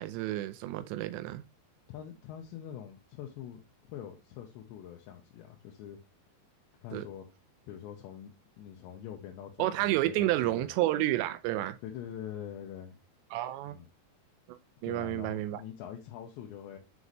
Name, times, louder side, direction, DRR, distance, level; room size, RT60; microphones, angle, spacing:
voice 1, 0.0-1.4 6.9-7.1 9.6-11.8 13.3-13.8 14.5-15.6, right 15 dB, 85° right, 2.8 m, -30 dB
voice 2, 1.9-6.0 6.8-7.2 7.7-10.7 11.8-13.0 13.6-13.9 14.8-16.8, left 10 dB, 90° left, 3.0 m, -44 dB
8.3 x 4.0 x 3.1 m
omnidirectional pair, 5.0 m